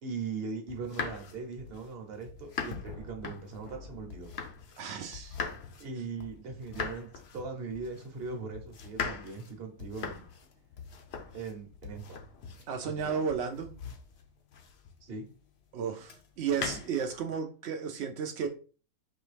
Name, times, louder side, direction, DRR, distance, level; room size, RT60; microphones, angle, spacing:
voice 1, 0.0-4.3 5.8-10.3 11.3-12.2 12.8-13.3 15.0-15.3, right 4 dB, 45° right, 1.0 m, -40 dB
sound 1, 0.7-4.9 5.1-15.1 16.0-17.2, left 5 dB, 55° left, 0.8 m, -41 dB
sound 2, 2.5-6.1 6.7-7.3 7.7-8.1 9.6-13.0, left 4 dB, 70° left, 1.4 m, -55 dB
voice 2, 4.8-5.4 12.7-13.8 15.7-18.5, right 6 dB, 70° right, 0.6 m, -33 dB
4.5 x 2.9 x 3.3 m
omnidirectional pair, 1.6 m